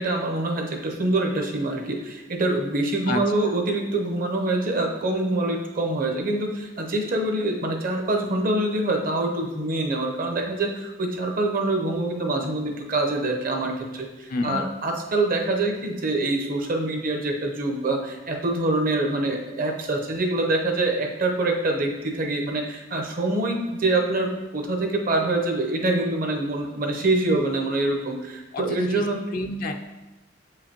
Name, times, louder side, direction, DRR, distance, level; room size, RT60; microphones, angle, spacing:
voice 1, 0.0-29.2, right 2 dB, 50° right, 3 dB, 0.8 m, -25 dB
voice 2, 3.1-3.5 14.3-14.7 28.5-29.7, left 2 dB, 45° left, 5 dB, 0.3 m, -30 dB
7.2 x 4.9 x 2.9 m, 1.1 s
head